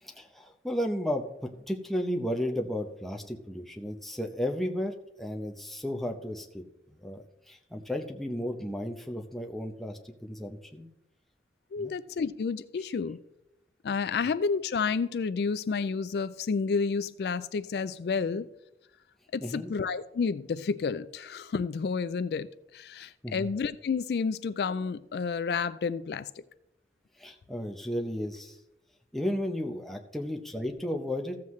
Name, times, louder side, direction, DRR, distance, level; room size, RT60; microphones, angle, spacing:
voice 1, 0.0-6.6 6.9-10.9 11.8-11.9 19.4-19.7 23.0-23.5 27.2-28.6 29.1-31.4, equal, ahead, 0.7 m, -34 dB
voice 2, 11.7-13.2 13.8-18.5 19.3-26.4, left 5 dB, 70° left, 0.3 m, -30 dB
14.5 x 7.5 x 3.1 m
head